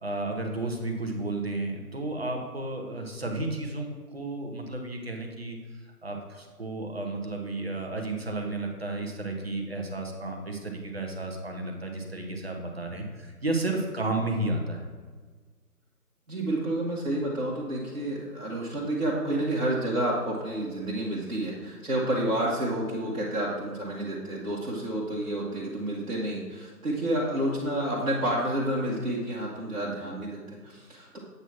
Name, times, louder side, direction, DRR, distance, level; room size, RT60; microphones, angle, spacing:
voice 1, 0.0-5.6 6.0-14.8, right 2 dB, 40° right, 2 dB, 0.9 m, -32 dB
voice 2, 16.3-31.2, right 1 dB, 55° right, -5 dB, 1.3 m, -29 dB
8.0 x 2.9 x 5.7 m, 1.5 s
figure-of-eight pair, 155°, 47 cm